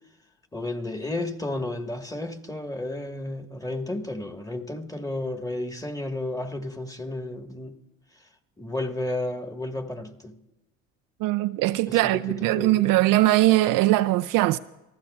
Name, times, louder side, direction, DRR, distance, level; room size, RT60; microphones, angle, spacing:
voice 1, 0.5-7.8 8.6-10.4 11.9-12.9, left 2 dB, 10° left, 1.5 m, -32 dB
voice 2, 11.2-14.6, right 17 dB, 65° right, 0.5 m, -21 dB
29.5 x 14.5 x 2.4 m
hypercardioid pair, 65°, 36 cm